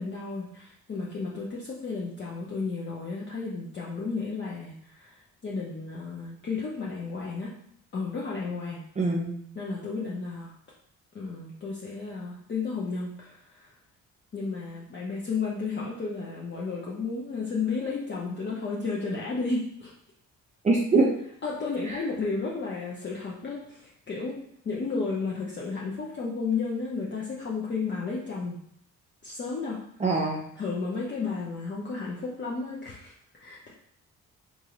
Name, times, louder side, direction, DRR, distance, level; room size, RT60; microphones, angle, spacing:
voice 1, 0.0-7.5 7.9-8.8 9.6-10.5 11.1-13.7 14.3-19.9 21.4-24.4 24.6-28.6 29.2-29.8 30.6-33.7, left 4 dB, 40° left, -5 dB, 0.7 m, -33 dB
voice 2, 9.0-9.3 20.6-21.1 21.9-22.0 30.0-30.4, right 3 dB, 25° right, -2 dB, 0.6 m, -23 dB
3.7 x 2.7 x 3.0 m, 0.68 s
cardioid pair, 90°, 30 cm